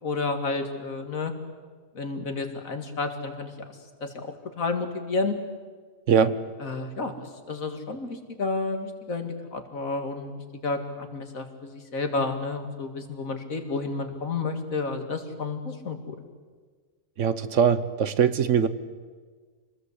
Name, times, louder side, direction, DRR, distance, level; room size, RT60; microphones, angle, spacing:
voice 1, 0.0-1.3 1.9-3.8 4.0-5.4 6.6-7.1 7.5-10.3 10.6-16.2, left 3 dB, 85° left, 6 dB, 2.6 m, -31 dB
voice 2, 6.1-6.4 17.2-18.7, right 7 dB, 65° right, 13 dB, 1.3 m, -21 dB
26.5 x 20.0 x 8.2 m, 1.5 s
omnidirectional pair, 1.4 m